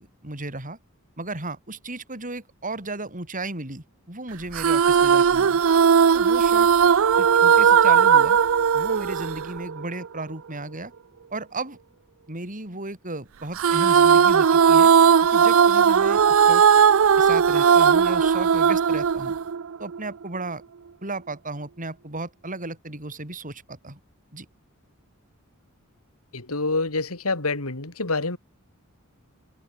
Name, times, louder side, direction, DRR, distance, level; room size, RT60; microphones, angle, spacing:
voice 1, 0.2-0.8 1.2-5.6 6.1-6.7 7.2-8.4 8.7-10.9 11.3-11.8 12.3-14.9 15.3-16.6 17.2-19.4 19.8-20.6 21.0-24.0 24.3-24.5, right 2 dB, 40° right, 6.8 m, -34 dB
sound 1, 4.5-10.1 13.6-20.0, right 7 dB, 70° right, 0.5 m, -17 dB
voice 2, 26.3-28.4, left 3 dB, 80° left, 3.0 m, -27 dB
head